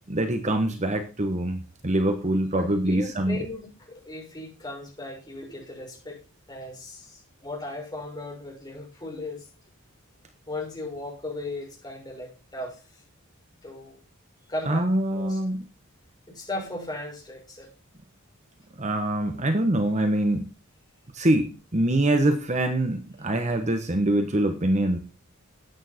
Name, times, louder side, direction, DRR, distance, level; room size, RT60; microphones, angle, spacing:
voice 1, 0.1-3.4 14.7-15.6 18.8-20.5 21.1-25.0, right 1 dB, 35° right, 7 dB, 1.3 m, -24 dB
voice 2, 2.5-6.2 6.5-9.5 10.5-12.8 13.6-14.0 14.5-14.9 15.1-15.4 16.3-17.7, left 2 dB, 20° left, -1 dB, 6.3 m, -37 dB
13.0 x 9.2 x 4.4 m, 0.33 s
head